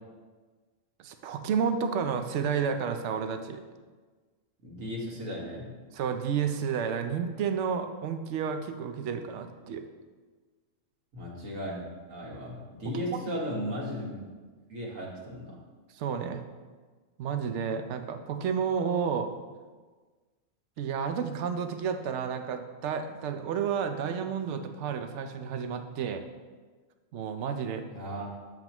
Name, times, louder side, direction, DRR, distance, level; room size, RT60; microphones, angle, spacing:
voice 1, 1.0-3.6 5.9-9.8 13.3-13.4 15.9-16.4 17.2-19.3 20.8-26.2 27.1-27.9, right 7 dB, 70° right, 7 dB, 0.9 m, -31 dB
voice 2, 4.6-5.7 11.1-14.2 14.7-15.6 27.9-28.3, equal, 85° right, -4 dB, 1.9 m, -36 dB
7.5 x 7.4 x 3.0 m, 1.4 s
omnidirectional pair, 1.4 m